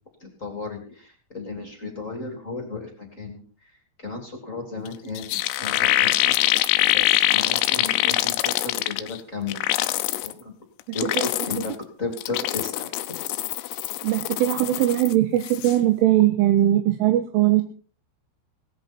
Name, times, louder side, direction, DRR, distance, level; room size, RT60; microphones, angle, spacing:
voice 1, 0.2-3.7 4.0-6.3 6.9-9.9 10.2-10.5 10.9-11.7 12.0-12.9, left 3 dB, 25° left, 3 dB, 2.1 m, -34 dB
sound 1, 4.9-5.0 5.2-9.2 9.5-10.3 10.8-11.8 12.1-15.1 15.4-15.8, left 15 dB, 85° left, 3.5 m, -24 dB
voice 2, 14.0-17.6, right 13 dB, 80° right, 7 dB, 3.6 m, -20 dB
18.0 x 14.0 x 4.4 m, 0.39 s
omnidirectional pair, 5.7 m